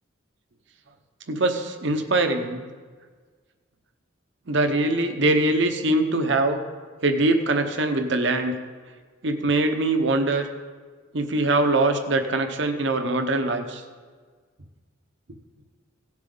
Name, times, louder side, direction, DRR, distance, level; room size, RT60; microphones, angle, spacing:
voice 1, 1.3-2.6 4.5-6.6 7.0-8.5 9.2-10.5 11.1-13.8, right 2 dB, 60° right, 7 dB, 0.9 m, -22 dB
16.5 x 7.5 x 3.9 m, 1.5 s
head